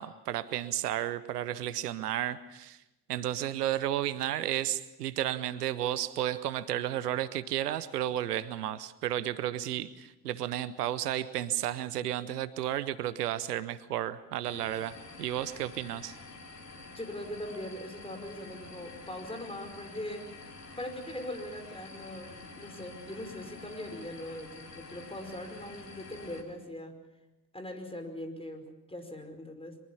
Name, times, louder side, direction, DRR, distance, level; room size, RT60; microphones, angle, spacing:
voice 1, 0.0-2.8 3.1-16.2, right 12 dB, 80° right, 16 dB, 0.8 m, -33 dB
sound 1, 14.4-26.4, left 3 dB, 90° left, 2.0 m, -48 dB
voice 2, 16.9-20.2 20.8-27.0 27.5-29.8, left 1 dB, 10° left, 6 dB, 5.2 m, -41 dB
24.0 x 22.5 x 7.1 m, 0.96 s
figure-of-eight pair, 40°, 46 cm